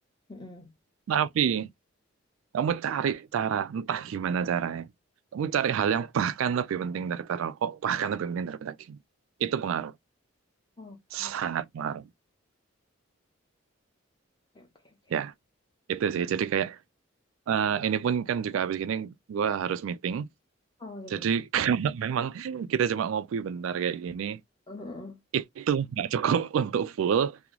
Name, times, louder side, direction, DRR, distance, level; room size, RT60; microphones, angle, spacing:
voice 1, 0.3-0.7 10.8-11.3 14.6-14.7 20.8-21.3 24.7-25.2, left 2 dB, 20° left, 0.9 m, -43 dB
voice 2, 1.1-1.7 2.5-4.9 5.3-9.0 9.4-9.9 11.1-12.1 15.1-15.3 15.9-16.8 17.5-20.3 21.1-24.4 25.3-27.4, right 8 dB, 75° right, 0.3 m, -28 dB
3.0 x 2.0 x 3.7 m
head